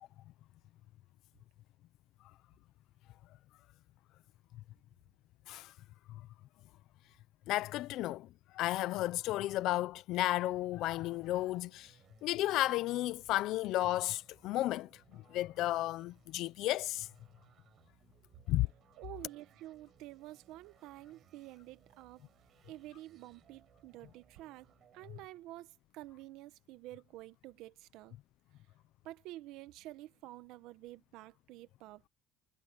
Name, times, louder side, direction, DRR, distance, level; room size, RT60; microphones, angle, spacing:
voice 1, 7.5-8.3 8.5-11.9 12.2-17.1 18.5-18.7, left 15 dB, 75° left, 0.6 m, -33 dB
sound 1, 10.5-25.3, right 9 dB, 50° right, 6.2 m, -66 dB
voice 2, 19.0-22.3 22.6-28.2 29.0-32.1, right 16 dB, 85° right, 1.0 m, -50 dB
cardioid pair, 125°, 0 cm